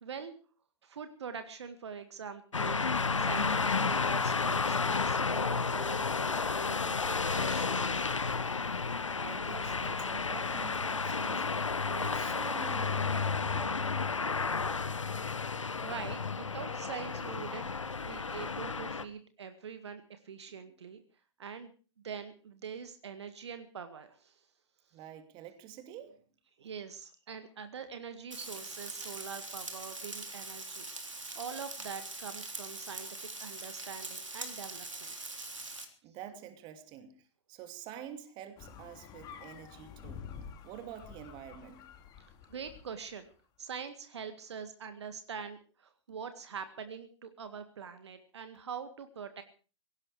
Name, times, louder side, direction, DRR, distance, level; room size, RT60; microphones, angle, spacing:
voice 1, 0.0-0.3 0.8-2.8 3.2-3.5 3.8-8.2 15.8-17.7 18.0-21.0 21.4-21.7 22.0-24.4 26.6-35.1 42.5-43.3 43.6-49.4, right 6 dB, 65° right, 1.9 m, -44 dB
sound 1, 2.5-19.0, left 4 dB, 85° left, 1.2 m, -32 dB
voice 2, 9.2-11.5 11.9-13.9 24.9-26.2 26.6-26.7 36.0-40.3 40.6-41.9, right 9 dB, 30° right, 2.6 m, -47 dB
Frying (food), 28.3-35.8, right 3 dB, 90° right, 3.6 m, -42 dB
sound 2, 38.6-43.1, left 7 dB, 25° left, 2.6 m, -49 dB
18.0 x 17.0 x 4.8 m
figure-of-eight pair, 125°, 16 cm